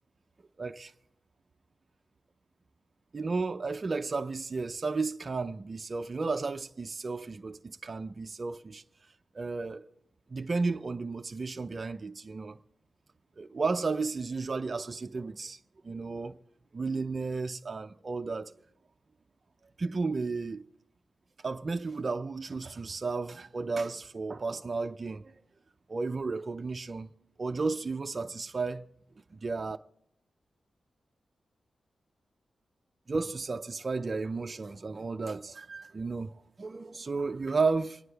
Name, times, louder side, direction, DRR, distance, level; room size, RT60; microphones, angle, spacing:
voice 1, 0.6-0.9 3.1-8.8 9.3-9.8 10.3-12.6 13.4-15.6 15.8-16.4 16.7-18.5 19.8-20.6 21.4-25.3 25.9-27.1 27.4-28.9 29.3-29.8 33.1-38.0, right 4 dB, 35° right, 0.5 m, -33 dB
26.0 x 9.5 x 3.4 m
wide cardioid pair, 145°, 0 cm